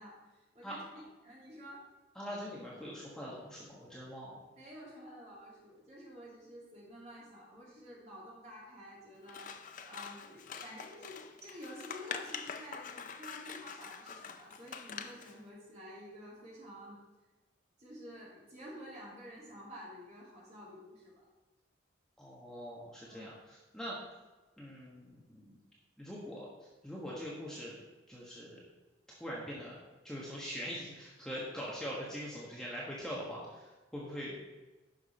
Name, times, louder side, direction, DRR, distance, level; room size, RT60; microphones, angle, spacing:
voice 1, 0.0-1.8 4.6-9.5 9.8-17.0 17.8-21.2 23.1-23.4, equal, 35° right, -5 dB, 2.7 m, -50 dB
voice 2, 2.1-4.4 22.2-24.0 24.6-25.5 26.0-26.5 26.8-27.7 28.1-28.6 29.2-29.7 30.0-34.4, equal, 5° left, -6 dB, 1.3 m, -43 dB
Scissors, 9.2-15.4, left 6 dB, 40° left, 0.5 m, -45 dB
10.5 x 6.0 x 4.3 m, 1.2 s
head